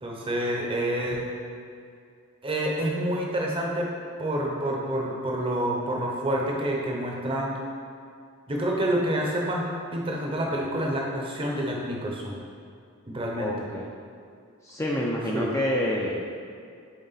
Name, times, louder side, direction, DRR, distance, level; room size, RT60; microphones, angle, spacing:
voice 1, 0.0-1.3 2.4-3.9 4.2-7.5 8.5-12.4 13.1-13.7 15.3-15.5, right 1 dB, 25° right, -1 dB, 0.8 m, -28 dB
voice 2, 13.3-13.9 14.6-16.1, left 1 dB, 15° left, -3 dB, 0.5 m, -27 dB
7.9 x 3.7 x 4.0 m, 2.3 s
head